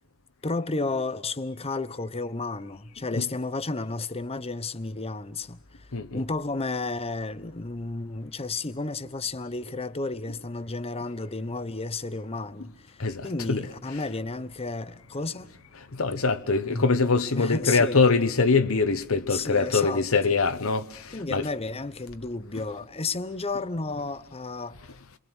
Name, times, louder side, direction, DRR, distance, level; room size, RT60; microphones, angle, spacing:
voice 1, 0.4-15.5 16.7-16.9 17.4-18.0 19.3-20.0 21.1-24.8, left 3 dB, 30° left, 1.0 m, -32 dB
voice 2, 5.9-6.2 13.0-14.0 15.9-21.5, left 4 dB, 70° left, 1.1 m, -24 dB
28.0 x 22.5 x 6.3 m
head